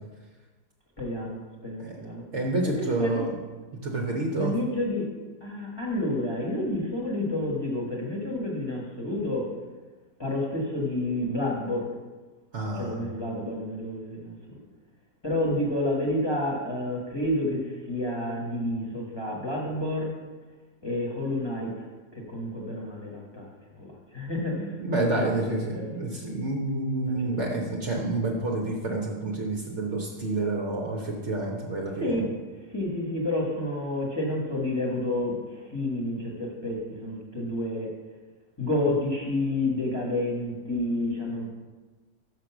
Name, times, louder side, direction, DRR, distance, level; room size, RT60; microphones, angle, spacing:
voice 1, 1.0-2.2 2.6-3.3 4.4-5.1 5.4-9.5 10.2-11.9 12.7-14.3 15.2-20.1 20.8-21.7 22.1-25.9 27.1-27.2 32.0-32.3 32.7-37.9 38.6-41.5, left 1 dB, 15° left, -3 dB, 1.2 m, -29 dB
voice 2, 2.3-3.4 3.8-4.5 12.5-13.0 24.8-32.1, right 2 dB, 50° right, -1 dB, 1.1 m, -28 dB
6.5 x 5.3 x 5.9 m, 1.3 s
omnidirectional pair, 1.7 m